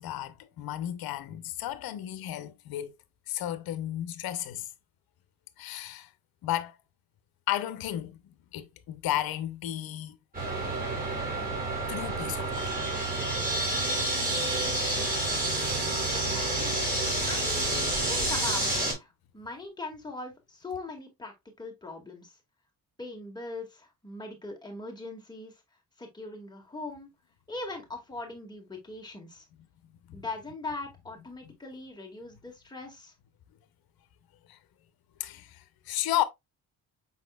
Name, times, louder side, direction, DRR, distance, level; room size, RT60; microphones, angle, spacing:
voice 1, 0.0-2.9 3.3-4.7 5.6-6.1 6.4-6.8 7.5-10.2 11.9-12.7 30.1-30.2 31.4-31.5 34.5-34.6 35.2-36.2, left 13 dB, 75° left, 0.7 m, -33 dB
sound 1, 10.3-18.9, right 2 dB, 25° right, 3.6 m, -29 dB
voice 2, 16.1-16.8 17.3-19.1 19.3-22.3 23.0-25.5 26.0-27.1 27.5-29.5 30.1-33.1, left 2 dB, 10° left, 1.9 m, -40 dB
5.6 x 4.1 x 2.3 m
cardioid pair, 85°, 36 cm